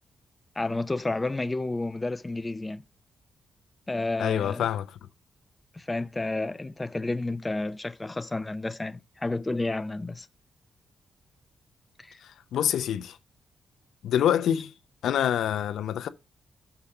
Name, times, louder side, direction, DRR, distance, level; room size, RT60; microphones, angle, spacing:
voice 1, 0.6-2.8 3.9-4.7 5.7-10.3 12.0-12.2, left 2 dB, 20° left, 0.5 m, -31 dB
voice 2, 4.2-5.0 12.2-13.2 14.0-14.7 15.0-16.1, left 10 dB, 85° left, 0.6 m, -26 dB
5.8 x 4.9 x 6.5 m
cardioid pair, 70°, 0 cm